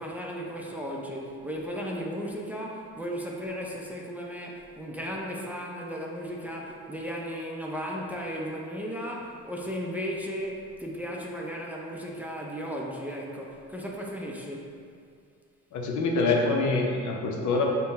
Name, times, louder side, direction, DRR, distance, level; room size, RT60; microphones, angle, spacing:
voice 1, 0.0-14.8, equal, 5° right, -2 dB, 0.5 m, -35 dB
voice 2, 15.7-17.7, left 3 dB, 75° left, 0 dB, 0.7 m, -25 dB
5.6 x 2.2 x 4.0 m, 2.3 s
cardioid pair, 90°, 30 cm